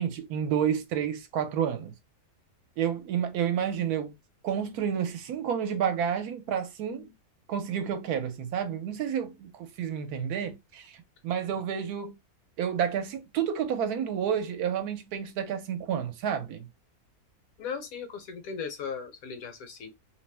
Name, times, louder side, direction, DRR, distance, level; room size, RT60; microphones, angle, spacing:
voice 1, 0.0-1.9 2.8-4.2 4.4-7.1 7.5-12.2 12.6-16.7, right 8 dB, 80° right, 1.1 m, -30 dB
voice 2, 17.6-19.9, left 6 dB, 70° left, 1.1 m, -37 dB
2.8 x 2.1 x 3.2 m
omnidirectional pair, 1.7 m